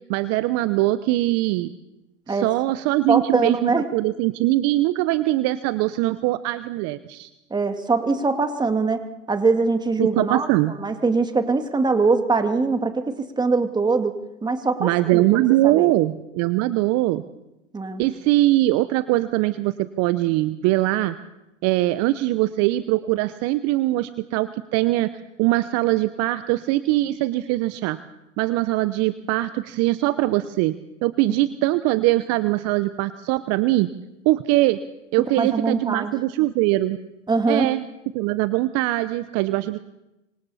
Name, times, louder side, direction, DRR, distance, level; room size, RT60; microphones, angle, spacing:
voice 1, 0.1-1.7 2.3-7.3 10.0-10.7 14.8-17.2 18.0-21.2 21.6-25.1 25.4-28.0 28.4-30.8 31.0-33.9 34.2-34.8 35.1-37.0 37.5-37.8 38.1-39.8, right 17 dB, 45° right, 13 dB, 0.9 m, -22 dB
voice 2, 3.1-3.9 7.5-10.5 10.8-14.2 14.4-15.9 17.7-18.0 35.4-36.1 37.3-37.7, right 4 dB, 10° right, 7 dB, 2.1 m, -22 dB
25.5 x 25.5 x 4.3 m, 0.93 s
hypercardioid pair, 100°, 37 cm